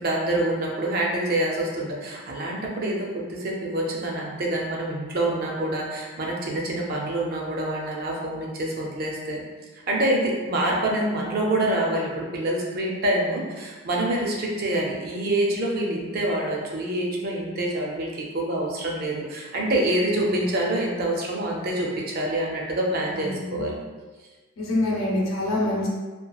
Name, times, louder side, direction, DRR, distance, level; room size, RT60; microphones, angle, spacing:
voice 1, 0.0-9.4 9.9-23.8, right 1 dB, 45° right, -2 dB, 0.4 m, -26 dB
voice 2, 20.1-20.5 23.1-23.6 24.6-25.9, left 1 dB, 70° left, -4 dB, 0.7 m, -26 dB
2.8 x 2.3 x 2.3 m, 1.3 s
head